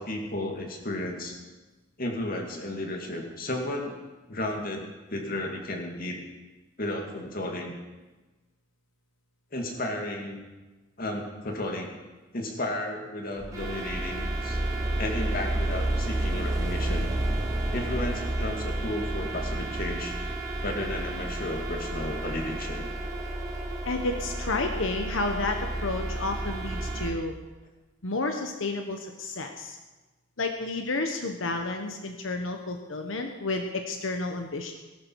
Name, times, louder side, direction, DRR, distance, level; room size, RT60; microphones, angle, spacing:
voice 1, 0.0-1.4 2.0-4.0 4.3-6.2 6.8-7.8 9.5-10.4 11.0-11.9 12.3-14.6 15.0-17.1 17.7-20.2 20.6-22.9, left 1 dB, 50° left, 2 dB, 2.4 m, -33 dB
sound 1, 13.4-27.1, right 1 dB, 20° right, 2.6 m, -31 dB
voice 2, 23.8-27.3 28.0-29.8 30.4-34.7, left 2 dB, 90° left, 4 dB, 1.2 m, -31 dB
18.5 x 12.0 x 4.8 m, 1.2 s
head